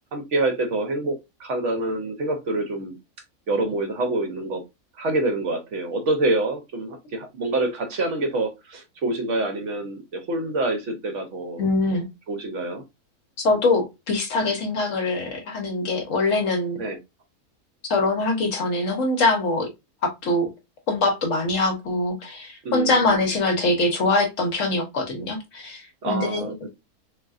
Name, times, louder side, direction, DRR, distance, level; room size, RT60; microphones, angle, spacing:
voice 1, 0.1-3.0 3.5-4.6 5.0-11.9 12.3-12.8 16.8-17.0 22.6-23.3 26.0-26.7, right 2 dB, 60° right, 0.9 m, -26 dB
voice 2, 11.6-12.1 13.4-16.8 17.9-19.7 20.0-20.5 20.9-26.7, left 2 dB, 60° left, 1.0 m, -23 dB
3.6 x 2.7 x 2.3 m
omnidirectional pair, 1.6 m